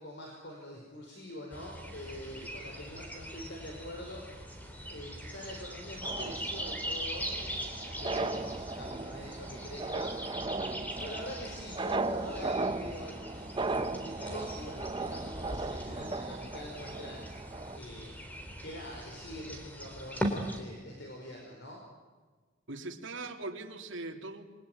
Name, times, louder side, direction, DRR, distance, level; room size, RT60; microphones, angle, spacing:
voice 1, 0.0-4.2 4.9-10.5 11.0-18.2 18.6-21.8, left 1 dB, 60° left, 0 dB, 5.2 m, -45 dB
sound 1, 1.5-20.6, equal, 10° left, 3.7 m, -41 dB
sound 2, 6.0-17.8, right 3 dB, 25° right, 0.9 m, -37 dB
voice 2, 22.7-24.4, right 2 dB, 70° right, 3 dB, 3.1 m, -41 dB
28.5 x 22.5 x 9.3 m, 1.4 s
head